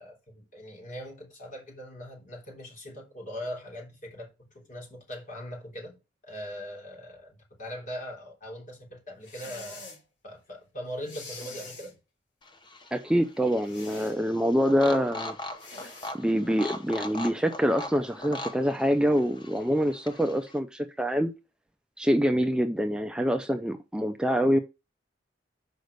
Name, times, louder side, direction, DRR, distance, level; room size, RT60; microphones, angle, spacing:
voice 1, 0.0-6.0 6.2-9.9 10.2-12.0, equal, 45° left, 3.4 m, -41 dB
sound 1, 9.2-10.0 11.0-11.9 13.6-14.2 15.6-16.1, left 3 dB, 75° left, 3.0 m, -44 dB
sound 2, 12.4-20.6, left 2 dB, 25° left, 0.9 m, -41 dB
voice 2, 12.9-15.4 16.1-21.3 22.0-24.6, equal, 5° right, 0.4 m, -25 dB
6.5 x 5.2 x 6.5 m
head